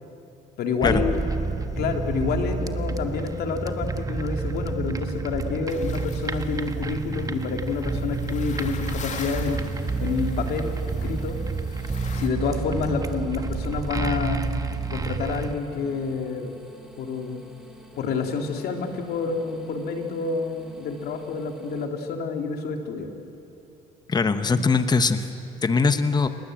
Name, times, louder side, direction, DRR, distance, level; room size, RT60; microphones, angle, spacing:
voice 1, 0.6-1.2 1.8-9.6 10.0-11.4 12.1-14.4 14.9-16.5 17.0-17.5 18.0-23.1, left 5 dB, 70° left, 4 dB, 2.8 m, -28 dB
sound 1, 0.8-15.5, right 4 dB, 20° right, 1.3 m, -29 dB
sound 2, 5.7-12.3, left 5 dB, 45° left, 2.5 m, -43 dB
sound 3, 9.1-21.9, right 2 dB, ahead, 4.1 m, -50 dB
voice 2, 24.1-25.3 25.6-26.3, left 4 dB, 25° left, 10 dB, 1.2 m, -21 dB
29.0 x 20.5 x 7.8 m, 3.0 s
cardioid pair, 110°, 17 cm